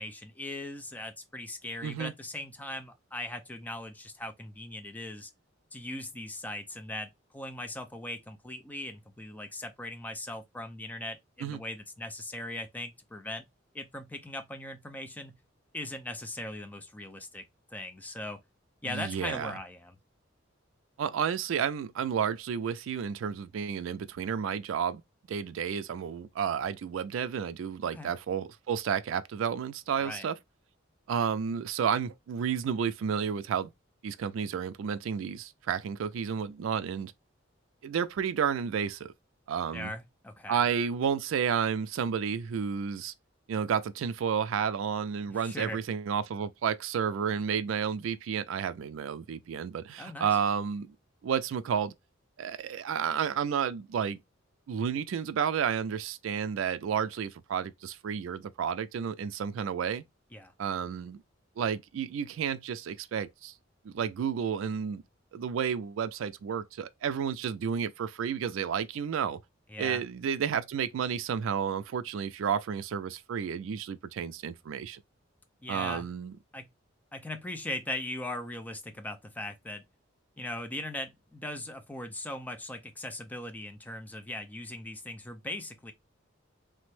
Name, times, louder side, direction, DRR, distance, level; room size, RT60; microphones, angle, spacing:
voice 1, 0.0-5.3 5.7-13.4 13.7-15.4 15.7-17.4 17.7-18.4 18.8-19.9 27.9-28.1 30.0-30.3 39.7-40.6 45.3-45.8 50.0-50.4 60.3-60.5 69.7-70.0 75.6-76.1 76.5-76.7 77.1-79.8 80.4-85.9, left 1 dB, 10° left, 0.4 m, -39 dB
voice 2, 1.8-2.1 11.4-11.6 18.8-19.5 21.0-25.0 25.3-30.4 31.1-33.7 34.0-37.1 37.8-39.1 39.5-39.9 40.5-43.1 43.5-51.0 51.2-51.9 52.4-54.2 54.7-60.0 60.6-61.2 61.6-63.5 63.8-65.0 65.3-69.4 69.8-75.0 75.7-76.3, right 7 dB, 70° right, 0.3 m, -31 dB
3.3 x 2.1 x 3.1 m
head